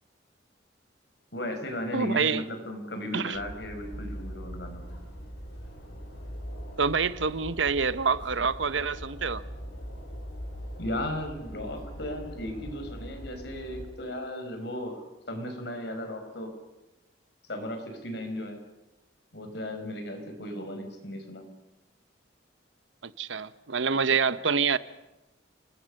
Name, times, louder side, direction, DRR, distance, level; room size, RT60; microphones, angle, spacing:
voice 1, 1.3-5.0 10.8-16.5 17.5-18.6 19.3-21.4, left 1 dB, 60° left, 5.3 m, -36 dB
voice 2, 1.9-2.4 3.1-3.4 6.8-9.4 23.0-24.8, right 5 dB, 85° right, 1.0 m, -26 dB
sound 1, 3.3-13.9, equal, 80° left, 6.6 m, -41 dB
30.0 x 20.5 x 6.7 m
head